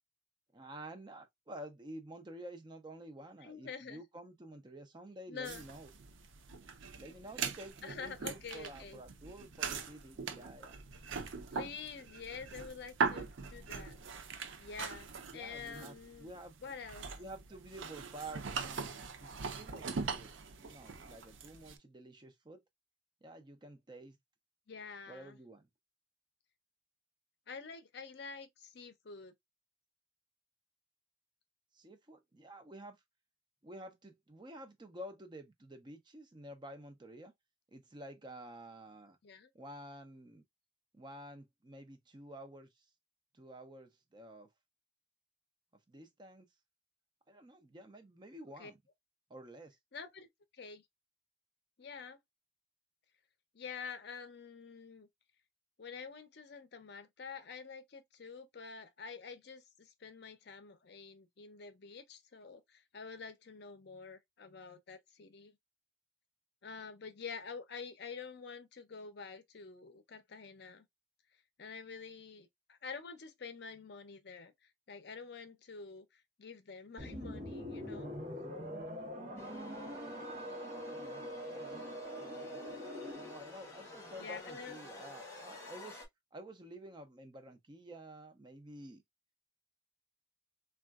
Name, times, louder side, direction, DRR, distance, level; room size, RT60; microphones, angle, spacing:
voice 1, 0.5-5.9 6.9-10.8 15.3-16.7 17.2-22.6 23.2-24.2 25.1-25.7 31.7-33.0 33.6-37.3 37.7-39.2 39.5-40.4 40.9-42.8 43.3-44.5 45.9-46.5 47.3-48.8 49.3-49.8 80.8-81.2 81.5-81.8 83.0-86.1 86.3-89.0, right 1 dB, 20° right, 0.5 m, -50 dB
voice 2, 3.4-4.0 5.3-5.7 7.8-9.0 11.5-14.0 14.6-16.3 16.6-17.1 24.7-25.4 27.5-29.3 39.2-39.5 48.6-48.7 49.9-50.3 50.5-50.9 51.8-52.2 53.5-55.1 55.8-65.6 66.6-70.9 71.6-78.1 84.1-84.8, left 5 dB, 55° left, 0.5 m, -47 dB
sound 1, 5.4-21.8, right 5 dB, 75° right, 0.5 m, -41 dB
sound 2, 77.0-83.5, equal, 45° right, 1.0 m, -43 dB
sound 3, 79.4-86.1, left 2 dB, 15° left, 1.0 m, -50 dB
3.6 x 2.3 x 2.3 m
head